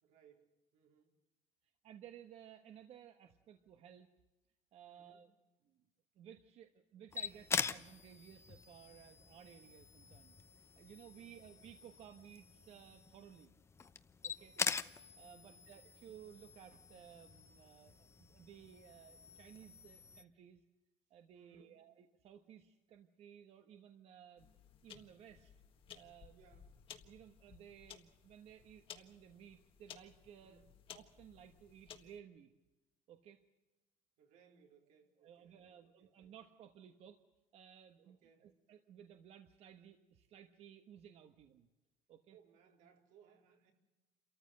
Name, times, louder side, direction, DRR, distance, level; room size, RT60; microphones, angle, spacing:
voice 1, 0.0-1.1 4.9-5.3 11.0-11.4 14.4-14.8 15.3-15.7 21.3-21.8 26.3-26.7 30.4-30.8 34.2-36.3 38.0-38.5 42.3-43.7, right 6 dB, 85° right, 2 dB, 4.0 m, -67 dB
voice 2, 1.8-4.1 4.7-5.3 5.6-5.8 6.1-13.5 14.2-14.5 15.2-20.6 21.1-24.5 24.8-25.5 25.9-26.4 27.0-30.6 30.9-32.5 33.1-33.4 35.2-37.2 37.5-41.7 42.1-42.4, right 9 dB, 55° right, 7 dB, 1.3 m, -58 dB
sound 1, 7.1-20.2, left 5 dB, 20° left, 0.8 m, -44 dB
sound 2, 24.4-32.2, left 8 dB, 45° left, 1.6 m, -58 dB
29.0 x 14.0 x 7.7 m, 1.1 s
cardioid pair, 155°, 13 cm